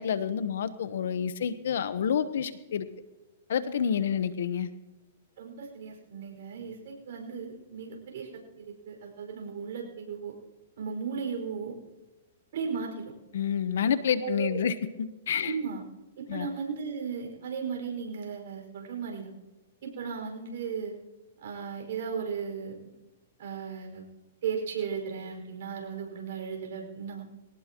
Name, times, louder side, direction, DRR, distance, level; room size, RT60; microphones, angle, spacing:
voice 1, 0.0-2.9 3.5-4.7 13.3-14.7 15.3-15.5 16.3-16.5, left 8 dB, 75° left, 12 dB, 1.2 m, -28 dB
voice 2, 5.4-8.3 8.6-10.3 10.8-11.8 12.5-13.1 14.2-14.6 15.3-15.8 16.2-19.3 19.8-21.0 21.4-22.9 23.4-24.1 24.4-27.3, right 6 dB, 65° right, 1 dB, 5.6 m, -36 dB
22.5 x 18.0 x 3.1 m, 1.1 s
hypercardioid pair, 135°, 0 cm